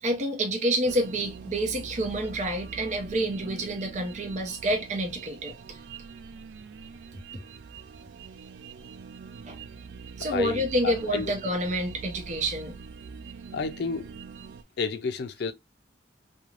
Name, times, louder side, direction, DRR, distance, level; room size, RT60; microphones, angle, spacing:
voice 1, 0.0-5.8 7.3-7.4 9.5-9.6 10.2-12.8, right 1 dB, 45° right, 0.7 m, -28 dB
sound 1, 0.8-14.6, right 5 dB, 80° right, 0.3 m, -44 dB
voice 2, 10.2-11.3 13.5-14.1 14.8-15.5, left 4 dB, 65° left, 0.4 m, -31 dB
3.1 x 2.2 x 2.4 m
head